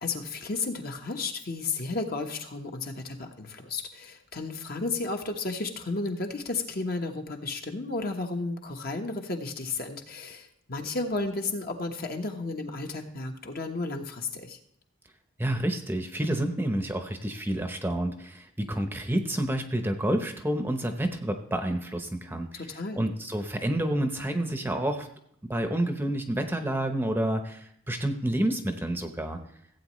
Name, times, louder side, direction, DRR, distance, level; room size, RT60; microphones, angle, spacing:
voice 1, 0.0-14.6 22.5-23.1, left 3 dB, 45° left, 3 dB, 1.2 m, -33 dB
voice 2, 15.4-22.6 22.9-25.1 25.5-29.4, right 1 dB, 10° right, 5 dB, 0.8 m, -29 dB
15.5 x 8.5 x 3.1 m, 0.72 s
head